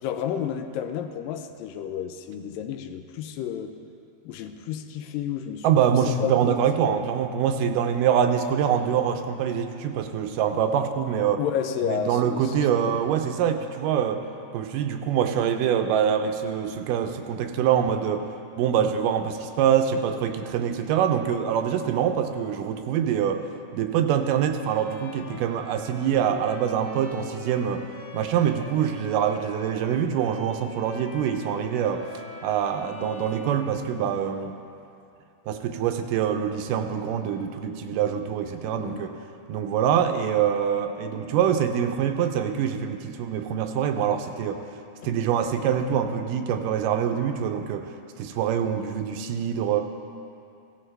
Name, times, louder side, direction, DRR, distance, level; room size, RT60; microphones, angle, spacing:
voice 1, 0.0-3.8 4.2-7.0 11.4-13.0 17.1-17.2 38.7-39.1 45.0-45.1, left 8 dB, 90° left, 7 dB, 2.3 m, -32 dB
voice 2, 5.6-11.4 11.8-14.2 14.5-18.3 18.6-23.4 23.7-27.8 28.1-32.0 32.4-34.5 35.5-39.1 39.5-44.6 45.0-47.9 48.2-49.8, right 8 dB, 80° right, 6 dB, 2.2 m, -25 dB
Bowed string instrument, 24.6-34.4, left 2 dB, 65° left, 2.5 m, -45 dB
16.5 x 14.0 x 3.3 m, 2.6 s
omnidirectional pair, 4.0 m